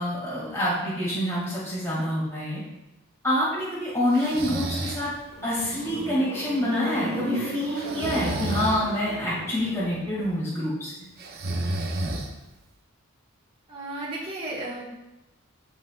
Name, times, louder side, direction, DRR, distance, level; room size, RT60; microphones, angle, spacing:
voice 1, 0.0-2.6 3.2-5.1 5.4-10.9, left 1 dB, 10° left, -9 dB, 2.7 m, -27 dB
Breathing, 4.1-5.1 7.8-8.8 11.2-12.6, right 1 dB, 45° right, 0.9 m, -30 dB
sound 1, 5.0-10.3, right 1 dB, 65° right, 1.2 m, -35 dB
voice 2, 13.7-14.9, right 2 dB, 25° right, -6 dB, 2.0 m, -34 dB
14.0 x 5.5 x 2.6 m, 0.96 s
head